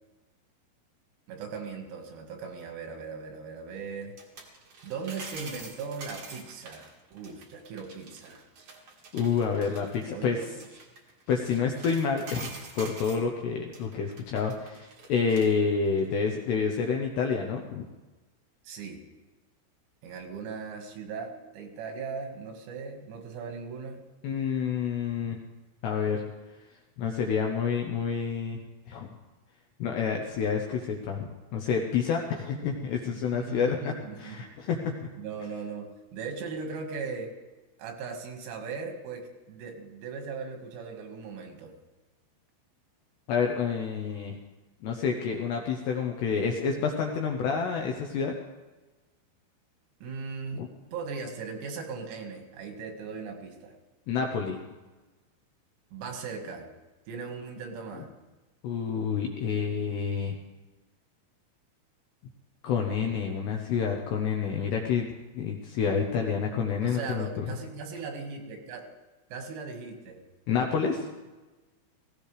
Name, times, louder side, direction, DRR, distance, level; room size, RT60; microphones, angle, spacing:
voice 1, 1.3-4.2 4.8-8.5 10.1-10.5 18.7-19.0 20.0-24.0 33.3-34.5 35.2-37.3 37.8-41.7 50.0-53.7 55.9-56.7 57.1-58.1 66.8-68.9 69.3-70.2, right 5 dB, 85° right, 3 dB, 4.6 m, -38 dB
sound 1, 4.0-13.2 13.7-15.5 15.9-16.0, right 3 dB, 60° right, 1.6 m, -46 dB
voice 2, 9.1-10.4 11.3-17.9 24.2-25.4 25.8-26.2 27.0-28.6 28.9-29.1 29.8-35.1 43.3-44.4 44.8-48.3 50.5-50.7 54.1-54.6 58.6-60.4 62.6-65.1 65.4-67.4 70.5-71.1, left 6 dB, 75° left, 2 dB, 2.6 m, -28 dB
17.5 x 16.5 x 3.3 m, 1.2 s
omnidirectional pair, 6.0 m